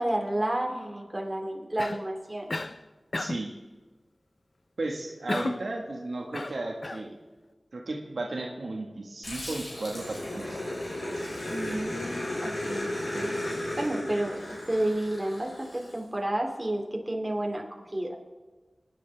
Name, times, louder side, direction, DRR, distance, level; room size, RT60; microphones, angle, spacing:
voice 1, 0.0-2.5 11.5-12.9 13.1-13.3 13.8-18.2, right 1 dB, 25° right, 1 dB, 2.4 m, -31 dB
Cough, 1.8-2.1 2.5-2.8 3.1-3.5 5.3-5.7 6.3-7.1, left 2 dB, 55° left, 0.5 m, -33 dB
voice 2, 3.2-3.5 4.8-7.2 7.7-10.6, right 2 dB, 85° right, 1 dB, 1.6 m, -34 dB
Growling, 9.2-15.9, left 1 dB, 90° left, 4.9 m, -35 dB
28.5 x 9.9 x 3.4 m, 1.3 s
wide cardioid pair, 50°, 0 cm